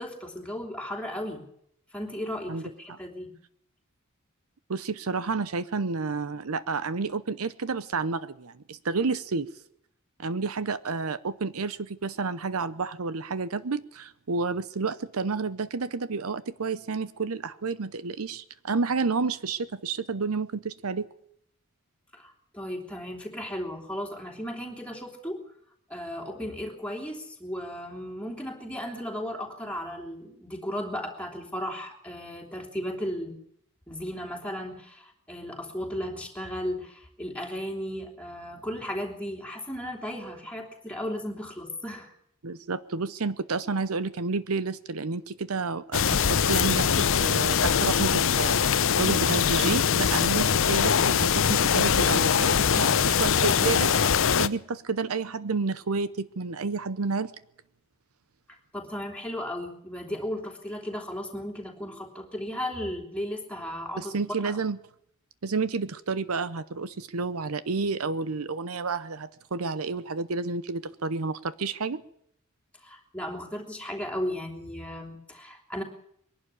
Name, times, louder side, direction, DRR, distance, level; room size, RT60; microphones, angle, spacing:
voice 1, 0.0-1.4 1.9-3.4 22.1-25.4 25.9-33.4 33.9-42.1 58.7-64.2 64.4-64.6 72.8-75.8, equal, 5° left, 1 dB, 3.2 m, -35 dB
voice 2, 4.7-9.5 10.2-21.1 42.4-53.9 54.4-57.3 64.0-64.8 65.4-72.0, right 4 dB, 75° right, 15 dB, 0.8 m, -30 dB
sound 1, 45.9-54.5, left 7 dB, 60° left, 0.7 m, -22 dB
22.0 x 12.0 x 10.0 m, 0.71 s
head